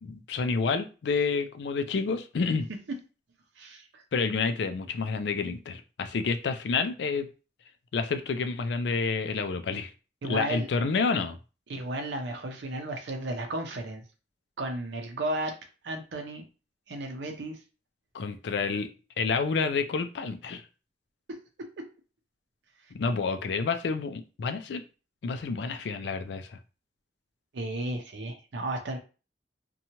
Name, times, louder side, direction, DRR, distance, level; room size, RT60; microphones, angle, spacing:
voice 1, 0.0-2.7 4.1-7.3 7.9-9.9 10.3-11.4 18.1-18.9 19.2-20.6 22.9-24.8 25.2-26.6, left 4 dB, 80° left, 0.4 m, -29 dB
voice 2, 3.6-4.0 10.2-10.7 11.7-14.0 14.6-15.6 15.8-16.5 16.9-17.6 21.3-21.9 27.5-29.0, right 1 dB, 85° right, 0.5 m, -34 dB
2.8 x 2.2 x 2.7 m
head